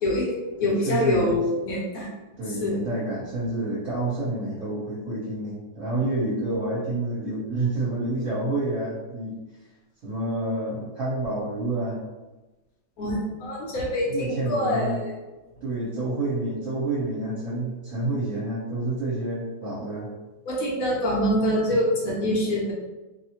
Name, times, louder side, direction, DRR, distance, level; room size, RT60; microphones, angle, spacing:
voice 1, 0.0-2.1 2.6-2.8 13.0-15.1 20.5-22.7, left 1 dB, 65° left, -3 dB, 1.0 m, -25 dB
voice 2, 0.6-1.4 2.4-9.4 10.0-12.0 14.1-15.0 15.6-20.1, right 2 dB, 55° right, -10 dB, 1.3 m, -28 dB
3.0 x 2.0 x 2.9 m, 1.1 s
omnidirectional pair, 1.9 m